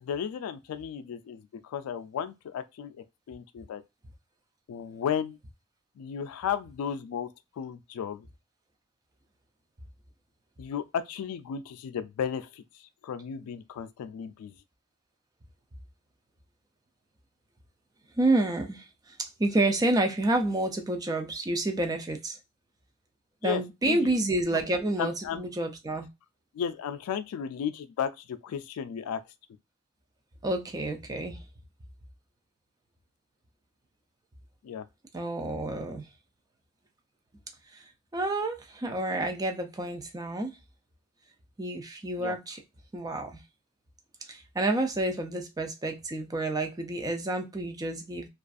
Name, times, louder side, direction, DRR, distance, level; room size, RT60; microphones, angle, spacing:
voice 1, 0.0-3.8 4.7-5.4 6.0-7.3 7.6-8.3 10.6-14.5 23.4-23.6 23.9-24.2 25.0-25.5 26.5-29.2 34.6-34.8 42.2-42.4, left 8 dB, 85° left, 0.3 m, -34 dB
voice 2, 18.2-22.4 23.4-26.1 30.4-31.4 35.1-36.0 37.7-37.8 38.1-40.5 41.6-42.6 42.9-43.4 44.3-48.3, right 2 dB, 15° right, 0.4 m, -29 dB
2.5 x 2.3 x 2.3 m
head